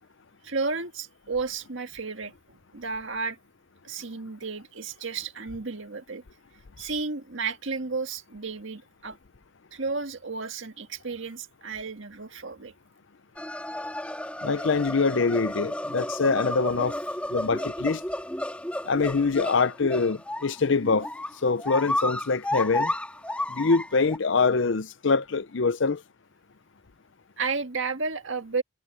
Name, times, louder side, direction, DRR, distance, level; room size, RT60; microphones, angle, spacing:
voice 1, 0.4-3.4 3.8-6.2 6.8-9.2 9.7-12.7 27.4-28.6, right 4 dB, 65° right, 1.9 m, -32 dB
sound 1, 13.4-24.2, left 1 dB, 5° left, 2.2 m, -32 dB
voice 2, 14.4-17.0 17.3-18.0 18.9-21.1 21.4-22.9 23.5-26.0, left 4 dB, 60° left, 0.6 m, -24 dB
head